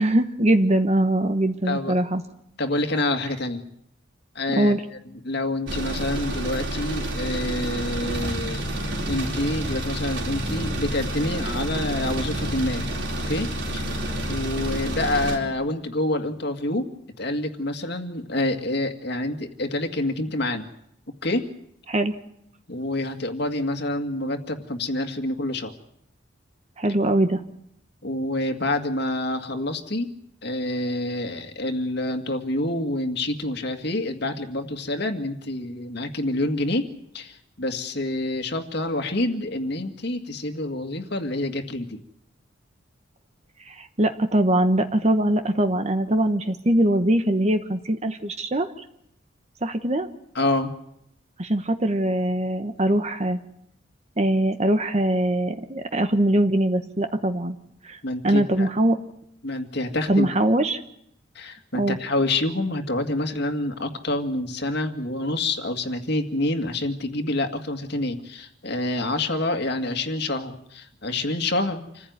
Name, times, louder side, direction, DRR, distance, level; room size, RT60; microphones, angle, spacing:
voice 1, 0.0-2.2 4.6-4.8 21.9-22.1 26.8-27.4 43.6-48.7 49.6-50.1 51.4-53.4 54.2-57.5 57.8-58.0 58.2-59.0 60.1-60.8 61.8-62.0, right 1 dB, 35° right, 8 dB, 1.1 m, -22 dB
voice 2, 1.7-2.0 2.6-3.6 4.3-4.7 5.2-8.7 9.0-12.9 13.3-13.5 13.7-13.8 14.3-16.9 17.2-20.7 21.2-21.4 22.7-25.7 28.0-30.1 30.4-36.9 37.1-42.0 50.3-50.7 58.0-58.7 59.4-60.3 61.4-72.1, left 2 dB, 55° left, 5 dB, 2.1 m, -27 dB
sound 1, 5.7-15.4, right 1 dB, 65° right, 4.9 m, -29 dB
27.5 x 15.5 x 9.5 m, 0.75 s
head